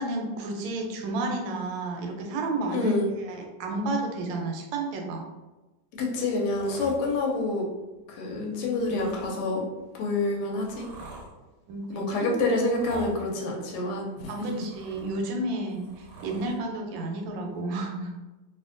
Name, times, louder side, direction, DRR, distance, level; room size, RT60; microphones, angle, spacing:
voice 1, 0.0-5.3 8.3-9.0 11.7-12.5 14.3-18.1, right 2 dB, 85° right, 2 dB, 1.3 m, -32 dB
voice 2, 2.7-3.1 6.0-7.7 8.1-9.6 10.0-10.9 11.9-14.6, left 2 dB, 70° left, -1 dB, 1.2 m, -27 dB
sound 1, 6.3-7.4 8.6-9.3 10.1-11.3 12.6-13.2 14.2-15.3 15.6-16.6 17.6-17.7, right 2 dB, 65° right, 1.0 m, -45 dB
2.8 x 2.5 x 2.4 m, 1.1 s
omnidirectional pair, 2.0 m